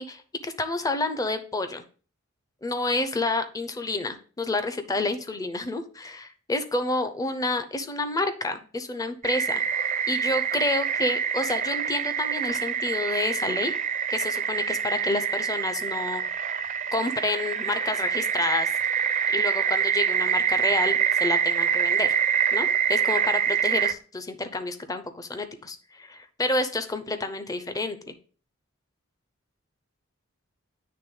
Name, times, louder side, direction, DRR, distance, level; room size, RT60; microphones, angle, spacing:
voice 1, 0.0-1.8 2.6-9.6 10.1-13.7 14.1-16.2 16.9-18.7 19.3-22.1 22.5-28.1, left 2 dB, 15° left, 9 dB, 0.6 m, -29 dB
sound 1, 9.2-23.9, right 8 dB, 35° right, 0.4 m, -26 dB
8.7 x 3.4 x 3.7 m, 0.39 s
head